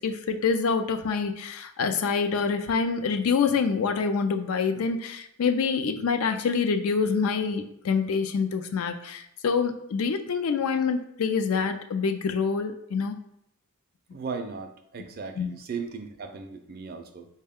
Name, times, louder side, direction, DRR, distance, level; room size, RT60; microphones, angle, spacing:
voice 1, 0.0-13.2 15.4-15.5, left 5 dB, 75° left, 7 dB, 0.4 m, -26 dB
voice 2, 14.1-17.3, right 5 dB, 45° right, 6 dB, 0.4 m, -37 dB
4.2 x 2.2 x 3.5 m, 0.76 s
head